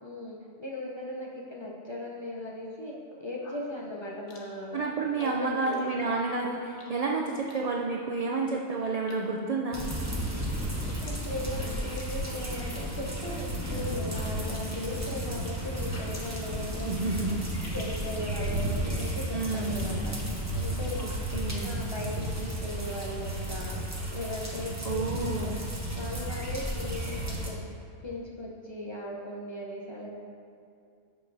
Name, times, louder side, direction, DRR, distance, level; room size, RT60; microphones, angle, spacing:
voice 1, 0.0-2.9 3.2-4.8 5.2-5.8 6.0-6.1 10.3-10.4 10.8-16.9 17.3-17.4 17.7-20.1 20.5-21.0 21.6-23.8 24.1-25.5 25.9-27.6 28.0-30.1, left 1 dB, 30° left, -4 dB, 0.6 m, -38 dB
sound 1, 3.0-3.8 4.3-4.6 5.0-5.3 5.6-5.8 6.2-6.3 6.8-7.0 7.3-7.6 8.2-8.6 8.8-9.4 9.8-10.1 10.4-11.1 11.4-11.5 11.8-12.0 12.2-12.8 13.1-13.8 14.1-15.5 15.8-21.8, left 3 dB, 70° left, 1.3 m, -51 dB
voice 2, 4.7-9.8 16.8-17.4 19.3-19.9 21.0-21.8 24.8-25.6, right 3 dB, 65° right, 0 dB, 0.3 m, -30 dB
sound 2, 9.7-27.5, right 1 dB, 15° right, 0.7 m, -33 dB
11.0 x 5.8 x 2.6 m, 2.4 s
omnidirectional pair, 1.2 m